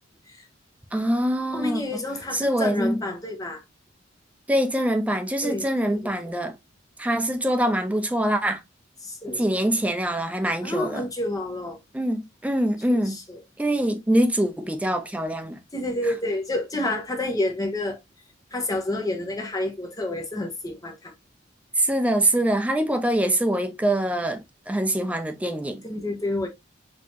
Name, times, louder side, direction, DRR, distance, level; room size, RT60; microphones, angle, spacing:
voice 1, 0.9-2.0 2.3-3.0 4.5-6.5 7.0-8.6 9.4-11.0 11.9-13.2 13.6-15.6 21.8-25.8, right 1 dB, 5° right, 0.5 m, -24 dB
voice 2, 1.5-3.6 5.4-5.7 5.9-6.1 9.0-9.4 10.6-11.8 12.9-13.4 15.7-18.0 18.5-21.1 25.8-26.5, left 1 dB, 20° left, 1.0 m, -29 dB
5.3 x 2.8 x 2.5 m
head